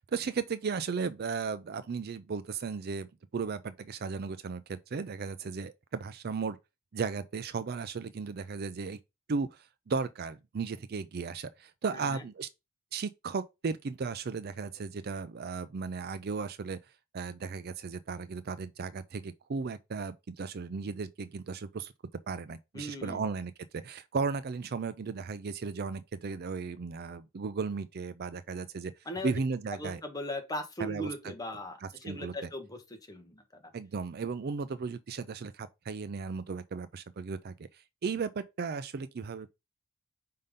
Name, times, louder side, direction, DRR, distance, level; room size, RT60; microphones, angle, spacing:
voice 1, 0.1-6.6 6.9-9.0 9.3-12.5 12.9-16.8 17.1-21.9 22.3-28.9 29.2-30.0 30.8-31.3 31.8-32.3 33.7-39.5, right 5 dB, 45° right, 0.4 m, -35 dB
voice 2, 11.9-12.2 22.7-23.3 29.0-29.3 29.8-32.8 33.1-33.7, equal, 15° left, 1.2 m, -39 dB
5.5 x 3.7 x 5.1 m
head